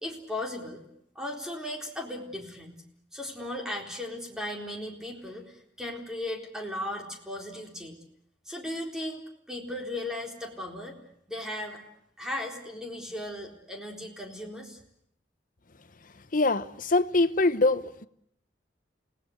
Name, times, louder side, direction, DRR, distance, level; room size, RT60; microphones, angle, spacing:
voice 1, 0.0-0.8 1.2-2.8 3.1-7.9 8.5-11.0 11.3-11.8 12.2-14.8, left 1 dB, 5° right, 4.0 m, -36 dB
voice 2, 16.3-18.1, left 2 dB, 50° left, 1.0 m, -24 dB
29.0 x 18.0 x 7.9 m
head